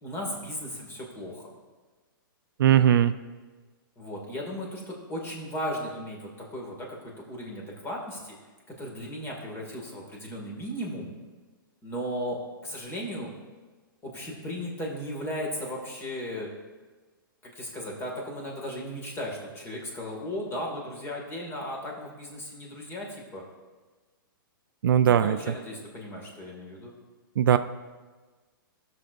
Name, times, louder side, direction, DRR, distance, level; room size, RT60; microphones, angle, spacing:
voice 1, 0.0-1.5 4.0-7.0 7.3-8.3 8.8-11.1 11.8-13.3 14.0-16.5 17.4-23.1 23.3-23.4 25.2-26.9, equal, 20° left, -1 dB, 2.1 m, -36 dB
voice 2, 2.6-3.1 24.8-25.4 27.4-27.6, right 10 dB, 70° right, 12 dB, 0.4 m, -19 dB
17.5 x 6.5 x 2.6 m, 1.3 s
hypercardioid pair, 135°, 12 cm